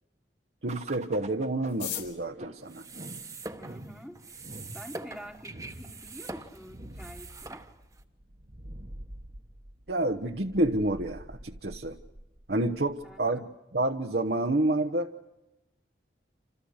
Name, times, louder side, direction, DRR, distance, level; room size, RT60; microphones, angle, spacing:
voice 1, 0.6-2.8 9.9-12.0 12.5-13.4 13.7-15.1, right 1 dB, 60° right, 1.0 m, -28 dB
sound 1, 0.7-13.3, right 1 dB, 40° right, 1.3 m, -46 dB
sound 2, 1.6-3.9 4.7-4.8 5.0-5.1 5.4-5.8 6.2-6.3 6.4-6.9 7.2-7.4 7.7-8.0, left 11 dB, 85° left, 4.3 m, -41 dB
sound 3, 2.6-8.0, right 3 dB, 20° right, 1.2 m, -44 dB
voice 2, 3.6-4.4 4.7-7.6 13.0-13.5, equal, 5° left, 1.6 m, -47 dB
28.0 x 28.0 x 6.5 m
head